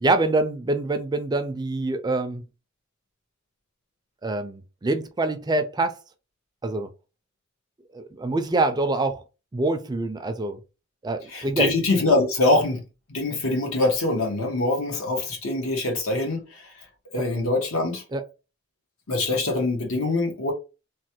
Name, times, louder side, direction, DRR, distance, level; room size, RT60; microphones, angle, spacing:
voice 1, 0.0-2.4 4.2-6.0 6.6-6.9 7.9-9.2 9.5-10.6 11.0-11.7 18.1-18.2, right 2 dB, 20° right, 0.4 m, -25 dB
voice 2, 11.3-12.8 13.1-16.7 17.1-18.0 19.1-20.5, left 2 dB, 80° left, 1.2 m, -24 dB
3.2 x 2.2 x 2.9 m
head